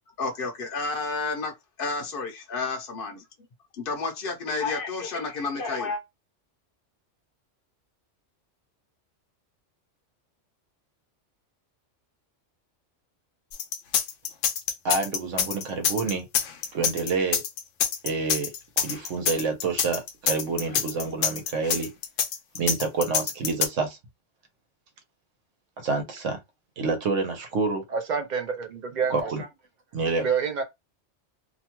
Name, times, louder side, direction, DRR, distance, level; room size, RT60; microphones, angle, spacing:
voice 1, 0.2-1.5 1.8-3.2 3.8-6.0, left 4 dB, 55° left, 0.8 m, -30 dB
sound 1, 13.5-23.7, left 8 dB, 85° left, 0.9 m, -26 dB
voice 2, 14.8-16.3 16.7-17.4 18.0-21.9 22.5-24.0 25.8-26.4 26.8-27.8 29.1-29.5 29.9-30.3, right 4 dB, 85° right, 1.2 m, -28 dB
voice 3, 27.9-29.2 30.2-30.6, right 6 dB, 55° right, 0.5 m, -27 dB
2.8 x 2.2 x 2.9 m
omnidirectional pair, 1.2 m